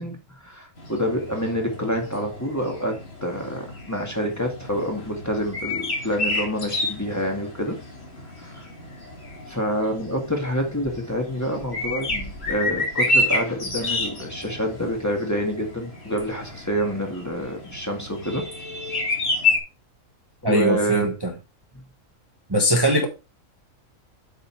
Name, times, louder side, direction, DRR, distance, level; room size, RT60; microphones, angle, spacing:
voice 1, 0.0-7.8 8.4-8.7 9.5-19.3 20.4-21.2 21.7-21.8, equal, 10° left, 1.9 m, -27 dB
sound 1, 0.8-19.6, left 2 dB, 50° left, 2.7 m, -30 dB
voice 2, 20.4-21.3 22.5-23.0, right 1 dB, 20° right, 1.3 m, -20 dB
8.5 x 5.4 x 4.6 m
omnidirectional pair, 1.4 m